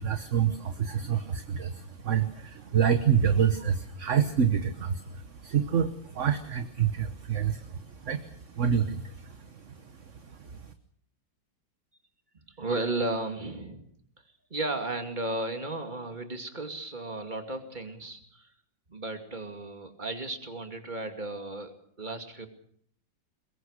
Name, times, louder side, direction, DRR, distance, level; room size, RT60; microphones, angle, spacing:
voice 1, 0.0-10.6, right 8 dB, 45° right, 9 dB, 1.3 m, -28 dB
voice 2, 12.5-13.8 14.5-18.5 18.9-21.7 22.0-22.5, right 2 dB, 25° right, 6 dB, 2.6 m, -34 dB
22.5 x 21.5 x 6.6 m, 0.64 s
omnidirectional pair, 2.0 m